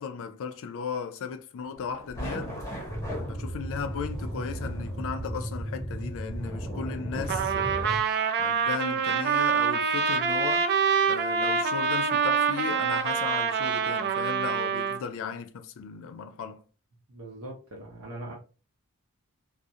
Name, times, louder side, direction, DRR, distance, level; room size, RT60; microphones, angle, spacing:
voice 1, 0.0-2.5 3.2-8.0 8.4-10.8 11.1-16.6, left 6 dB, 60° left, 0.3 m, -36 dB
sound 1, 1.7-8.0, equal, 15° left, 0.7 m, -40 dB
sound 2, 2.9-8.0, right 1 dB, 30° right, 0.7 m, -35 dB
Trumpet, 7.3-15.0, right 6 dB, 50° right, 0.3 m, -26 dB
voice 2, 17.1-18.3, right 1 dB, 75° right, 0.7 m, -41 dB
2.3 x 2.0 x 2.7 m
head